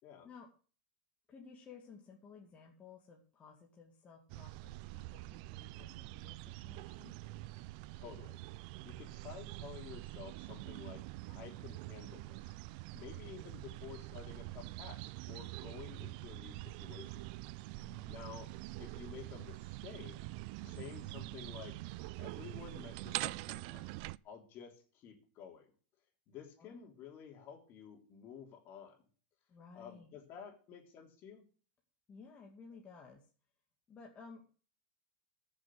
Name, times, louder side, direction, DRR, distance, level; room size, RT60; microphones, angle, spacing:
voice 1, 1.3-7.3 17.8-18.3 20.6-21.0 26.6-26.9 29.5-30.2 32.1-33.3 33.9-34.5, left 5 dB, 25° left, 0 dB, 2.3 m, -56 dB
sound 1, 4.3-24.2, right 20 dB, 55° right, 0.5 m, -45 dB
voice 2, 7.9-8.4 8.8-12.6 12.9-17.3 18.1-18.5 18.8-20.2 20.6-21.8 22.2-24.0 24.2-25.7 26.3-29.0 29.7-31.5, left 8 dB, 40° left, 4 dB, 3.8 m, -52 dB
15.0 x 7.1 x 6.3 m, 0.40 s
supercardioid pair, 135°, 5 cm